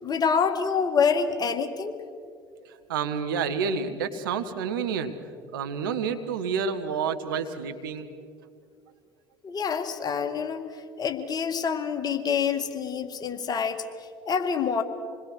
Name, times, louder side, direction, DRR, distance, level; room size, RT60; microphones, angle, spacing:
voice 1, 0.0-2.0 9.4-10.7 11.0-13.8 14.3-14.8, left 6 dB, 35° left, 7 dB, 1.9 m, -26 dB
voice 2, 2.9-5.1 5.5-8.1, right 6 dB, 75° right, 7 dB, 1.4 m, -29 dB
27.0 x 21.0 x 6.4 m, 2.3 s
figure-of-eight pair, 65°, 11 cm